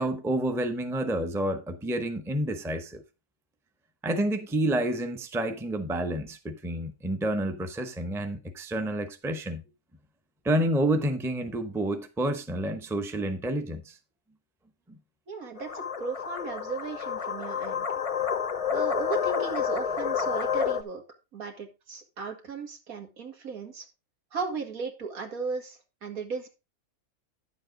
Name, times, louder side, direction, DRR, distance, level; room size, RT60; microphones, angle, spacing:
voice 1, 0.0-3.0 4.0-9.6 10.4-14.0, right 1 dB, 5° right, 0.6 m, -29 dB
voice 2, 15.3-17.9 18.7-21.0 21.3-23.9 24.3-26.5, right 4 dB, 80° right, 2.2 m, -36 dB
sound 1, 15.6-20.8, left 7 dB, 35° left, 0.5 m, -29 dB
10.0 x 7.3 x 3.8 m
omnidirectional pair, 1.5 m